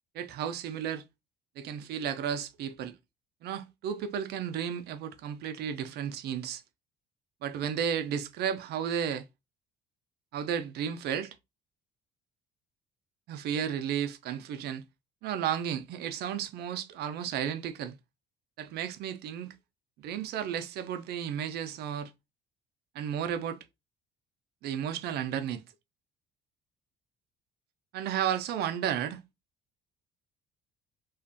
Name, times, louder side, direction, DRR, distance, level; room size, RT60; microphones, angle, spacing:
voice 1, 0.1-1.0 1.6-3.0 3.4-6.6 7.4-9.3 10.3-11.4 13.3-14.8 15.2-17.9 18.6-19.5 20.0-22.1 22.9-23.6 24.6-25.6 27.9-29.2, right 9 dB, 65° right, 0.4 m, -33 dB
2.4 x 2.2 x 2.4 m
cardioid pair, 115°, 18 cm